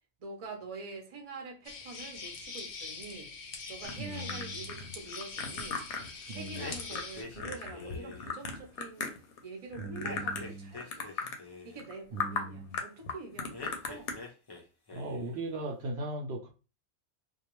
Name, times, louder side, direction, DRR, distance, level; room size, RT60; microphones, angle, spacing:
voice 1, 0.2-3.3 3.7-5.8 6.3-9.1 9.4-11.3 11.6-14.2, right 4 dB, 40° right, 0.6 m, -46 dB
sound 1, 1.6-7.2, left 4 dB, 60° left, 0.7 m, -43 dB
sound 2, 3.8-9.4 9.7-10.5 10.8-11.4 11.8-11.9 12.2-12.4 12.7-14.1, left 5 dB, 90° left, 0.9 m, -37 dB
voice 2, 3.9-4.9 6.3-6.8 9.8-10.8 12.1-12.8 14.9-16.5, right 1 dB, 70° right, 0.8 m, -39 dB
sound 3, 6.5-8.4 10.0-11.9 13.5-14.6 14.9-15.4, left 3 dB, 40° left, 0.3 m, -45 dB
2.3 x 2.3 x 2.9 m
omnidirectional pair, 1.1 m